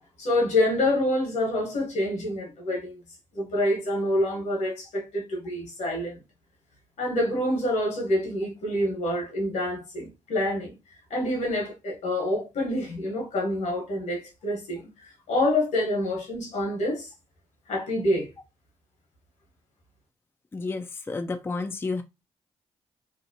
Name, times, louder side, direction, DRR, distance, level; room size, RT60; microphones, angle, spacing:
voice 1, 0.2-3.0 3.3-6.2 7.0-10.7 11.1-17.1 17.7-18.3, left 1 dB, 70° left, 1.2 m, -27 dB
voice 2, 20.5-22.0, left 3 dB, 20° left, 0.4 m, -31 dB
2.8 x 2.1 x 2.6 m
supercardioid pair, 50°, 13 cm